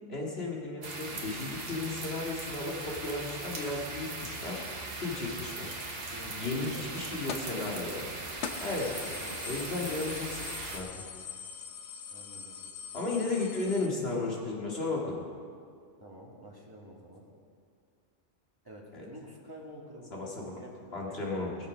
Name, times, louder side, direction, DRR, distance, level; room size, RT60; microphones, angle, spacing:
voice 1, 0.1-4.6 5.0-5.7 6.3-8.1 8.6-8.9 9.4-11.0 12.9-15.2 18.9-19.1 20.1-20.6 20.9-21.6, left 3 dB, 55° left, -3 dB, 2.4 m, -34 dB
sound 1, 0.8-10.8, right 2 dB, 55° right, 1.5 m, -39 dB
voice 2, 6.1-7.5 8.9-9.5 12.1-12.5 16.0-17.2 18.6-21.2, equal, 20° right, -3 dB, 2.0 m, -49 dB
sound 2, 7.3-7.6 8.0-8.1 8.4-13.9, left 6 dB, 75° left, 1.1 m, -42 dB
20.0 x 7.0 x 5.3 m, 2.2 s
omnidirectional pair, 1.2 m